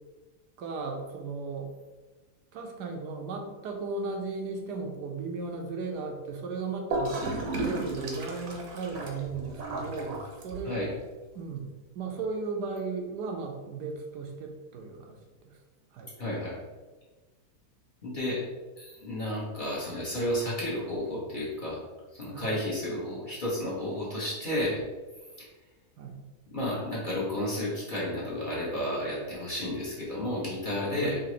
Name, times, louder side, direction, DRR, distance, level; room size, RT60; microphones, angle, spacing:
voice 1, 0.6-1.7 2.5-10.9 11.3-15.2 15.4-15.6 15.9-16.1 22.3-22.5 26.0-26.3 31.0-31.2, right 4 dB, 85° right, 2 dB, 1.3 m, -36 dB
Gurgling / Toilet flush, 6.9-10.9, right 2 dB, 60° right, 1.1 m, -34 dB
voice 2, 16.2-16.5 18.0-18.4 18.8-21.8 22.1-24.8 25.4-25.5 26.5-31.2, left 1 dB, 35° left, -6 dB, 1.0 m, -32 dB
4.8 x 2.8 x 3.1 m, 1.2 s
omnidirectional pair, 1.7 m